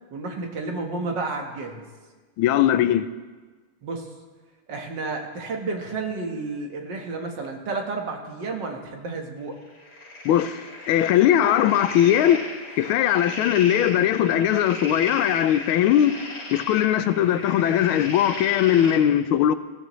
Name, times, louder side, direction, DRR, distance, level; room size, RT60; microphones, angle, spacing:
voice 1, 0.1-1.8 3.8-4.1 4.7-9.6, right 3 dB, 60° right, 2.0 m, -31 dB
voice 2, 2.4-3.1 10.2-10.6 10.9-12.5 12.8-16.1 16.5-19.5, left 11 dB, 85° left, 1.4 m, -20 dB
sound 1, 9.7-19.0, left 2 dB, 50° left, 2.7 m, -36 dB
19.0 x 14.0 x 3.1 m
omnidirectional pair, 2.2 m